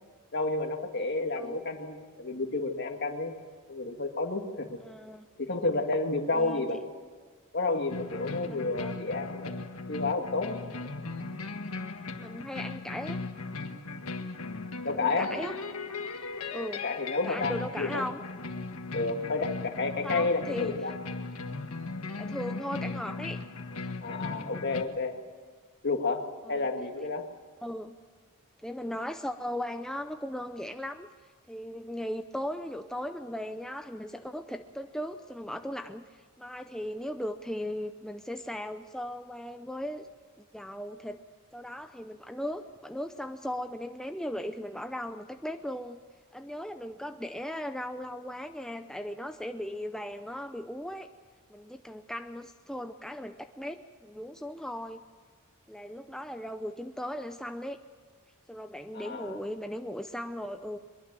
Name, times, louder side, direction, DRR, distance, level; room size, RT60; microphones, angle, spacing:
voice 1, 0.3-3.4 3.7-4.8 5.4-6.8 7.5-9.5 9.9-10.9 14.8-15.3 16.8-18.0 18.9-20.9 24.0-25.2 25.8-27.3 58.9-59.4, left 3 dB, 50° left, 4 dB, 2.2 m, -31 dB
voice 2, 4.8-5.3 6.3-6.8 8.4-9.0 12.2-13.2 14.9-15.6 16.5-16.8 17.2-18.2 20.0-20.8 22.2-23.4 26.4-26.7 27.6-28.0 28.6-31.1 31.5-40.1 40.4-41.2 41.5-46.0 46.3-51.1 51.5-55.0 55.7-57.8 58.5-60.8, equal, 5° left, 6 dB, 0.6 m, -37 dB
sound 1, 7.9-24.8, left 3 dB, 80° left, 1.7 m, -38 dB
23.0 x 22.0 x 7.5 m, 1.5 s
head